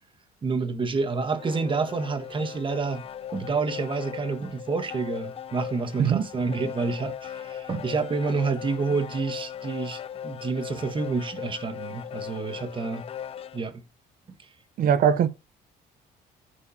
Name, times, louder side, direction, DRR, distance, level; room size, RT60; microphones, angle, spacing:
voice 1, 0.4-3.1 3.3-13.1 13.5-13.8 14.4-14.5, right 4 dB, 30° right, 1.3 m, -29 dB
sound 1, 1.0-13.6, left 9 dB, 35° left, 0.4 m, -38 dB
voice 2, 14.8-15.3, right 8 dB, 60° right, 0.8 m, -20 dB
14.0 x 4.9 x 2.8 m
cardioid pair, 110°, 17 cm